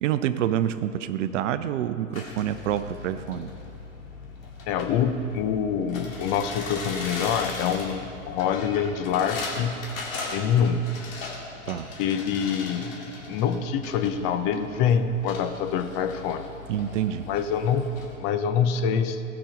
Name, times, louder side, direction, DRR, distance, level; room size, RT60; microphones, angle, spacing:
voice 1, 0.0-3.5 11.7-11.9 16.7-17.3, right 11 dB, 65° right, 12 dB, 0.7 m, -27 dB
sound 1, 2.1-18.2, left 3 dB, 80° left, 2.5 m, -38 dB
voice 2, 4.7-9.8 10.3-10.8 12.0-13.0 13.3-16.5 17.3-17.9 18.2-19.2, left 7 dB, 45° left, 9 dB, 0.8 m, -25 dB
16.5 x 6.2 x 5.1 m, 2.7 s
hypercardioid pair, 100°, 40 cm